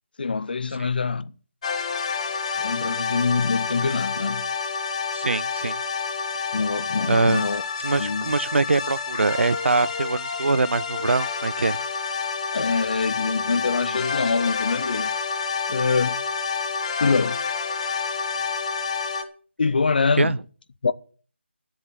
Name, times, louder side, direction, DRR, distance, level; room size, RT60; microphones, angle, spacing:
voice 1, 0.2-1.3 2.6-4.5 6.5-7.6 8.0-8.3 12.5-15.1 15.7-16.2 17.0-17.4 19.6-20.3 20.8-20.9, left 4 dB, 50° left, 0.7 m, -24 dB
sound 1, 1.6-19.2, left 5 dB, 30° left, 1.3 m, -28 dB
voice 2, 5.1-5.8 7.1-7.5 7.8-11.8 20.2-20.4, right 3 dB, 70° right, 0.6 m, -23 dB
12.5 x 7.4 x 8.8 m
figure-of-eight pair, 165°, 7 cm